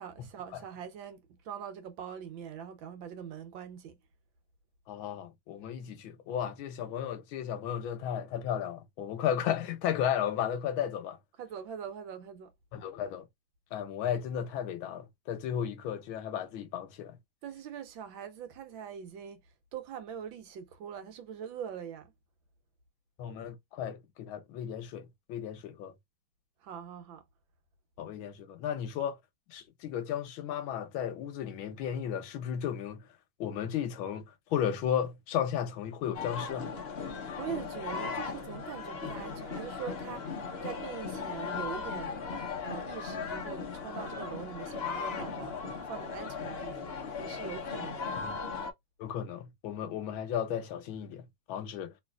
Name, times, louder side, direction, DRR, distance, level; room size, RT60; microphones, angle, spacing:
voice 1, 0.0-4.0 11.4-12.5 17.4-19.4 19.7-22.1 26.6-27.2 37.4-42.2 42.6-45.5 45.9-48.1, right 8 dB, 75° right, 1.5 m, -42 dB
voice 2, 4.9-11.2 12.7-13.2 13.7-17.2 23.2-25.9 28.0-29.2 29.5-33.0 33.4-36.7 48.2-48.3 49.0-51.9, left 9 dB, 85° left, 1.6 m, -34 dB
sound 1, 36.1-48.7, left 5 dB, 45° left, 0.8 m, -37 dB
3.2 x 3.1 x 2.3 m
omnidirectional pair, 2.2 m